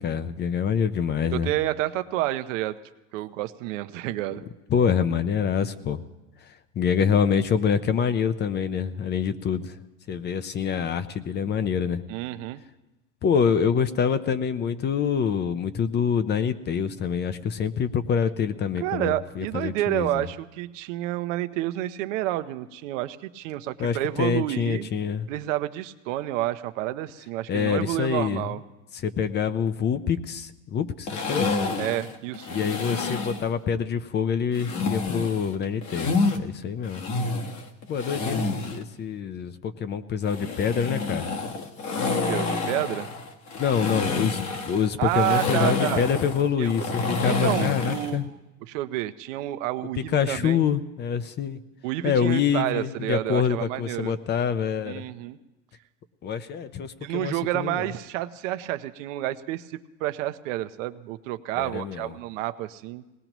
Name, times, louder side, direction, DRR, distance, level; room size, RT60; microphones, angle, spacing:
voice 1, 0.0-1.5 4.7-6.0 6.8-9.8 10.1-12.0 13.2-20.3 23.8-25.3 27.5-28.4 28.9-31.6 32.5-37.0 37.9-41.3 43.5-48.3 50.1-51.6 52.0-55.0 56.2-57.9 61.6-62.1, left 7 dB, 30° left, 13 dB, 0.6 m, -26 dB
voice 2, 1.3-2.8 3.1-4.4 12.1-12.6 18.8-24.9 25.3-28.6 31.8-32.5 42.1-43.1 45.0-46.1 46.6-46.7 47.2-48.3 48.6-50.7 51.8-54.1 54.8-55.4 57.0-63.0, right 15 dB, 80° right, 10 dB, 0.8 m, -29 dB
sound 1, 31.1-33.5 34.5-36.4 36.8-38.8 40.2-48.2, left 3 dB, 45° left, 1.4 m, -28 dB
21.5 x 18.5 x 3.0 m, 1.0 s
supercardioid pair, 125°, 37 cm